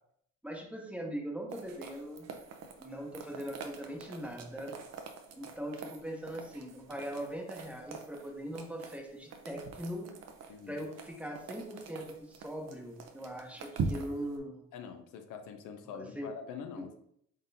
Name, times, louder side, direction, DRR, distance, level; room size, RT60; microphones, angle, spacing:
voice 1, 0.4-2.3 2.8-4.7 5.4-10.2 10.7-14.6 15.9-16.3 16.8-16.9, equal, 5° right, 1 dB, 0.8 m, -41 dB
sound 1, 1.5-14.4, right 4 dB, 60° right, 0.6 m, -44 dB
voice 2, 10.5-10.8 14.7-16.9, left 7 dB, 85° left, 6 dB, 0.5 m, -44 dB
3.9 x 3.7 x 2.6 m, 0.70 s
cardioid pair, 90°, 30 cm